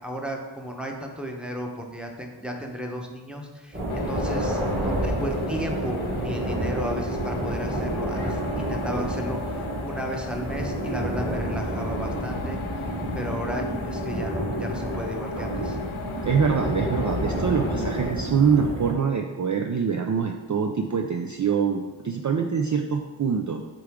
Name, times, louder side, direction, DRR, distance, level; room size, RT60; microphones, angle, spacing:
voice 1, 0.0-12.9 13.1-15.8, equal, ahead, 1 dB, 0.9 m, -34 dB
sound 1, 3.7-18.9, right 1 dB, 25° right, 1.8 m, -29 dB
sound 2, 3.9-18.1, left 5 dB, 90° left, 0.6 m, -36 dB
voice 2, 16.2-23.6, right 6 dB, 40° right, 3 dB, 0.4 m, -24 dB
7.7 x 3.7 x 3.6 m, 1.2 s
wide cardioid pair, 50°, 47 cm